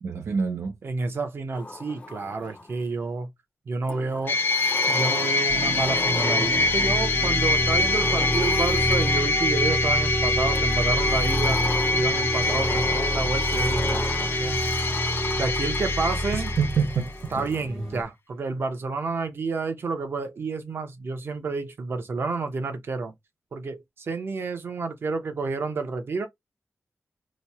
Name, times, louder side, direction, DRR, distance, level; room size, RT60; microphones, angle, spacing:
voice 1, 0.0-0.8 16.3-17.5, right 6 dB, 85° right, 0.5 m, -27 dB
voice 2, 0.8-3.3 3.7-4.4 4.9-11.6 11.9-14.1 14.4-14.6 15.3-16.5 17.3-23.1 23.5-26.3, right 4 dB, 60° right, 0.8 m, -30 dB
Sliding door, 1.5-2.9 3.9-9.4 10.5-17.6, left 2 dB, 30° left, 0.6 m, -37 dB
sound 1, 4.3-17.1, left 3 dB, 60° left, 0.9 m, -25 dB
sound 2, 5.5-18.0, right 1 dB, 15° right, 0.6 m, -28 dB
3.1 x 2.2 x 4.1 m
wide cardioid pair, 170°, 5 cm